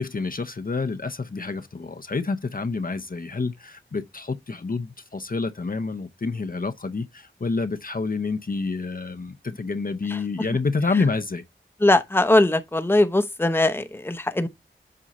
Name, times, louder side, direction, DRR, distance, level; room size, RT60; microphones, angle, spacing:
voice 1, 0.0-11.4, left 4 dB, 45° left, 0.7 m, -28 dB
voice 2, 11.8-14.5, left 2 dB, 10° left, 0.7 m, -20 dB
7.6 x 2.7 x 5.3 m
cardioid pair, 40°, 21 cm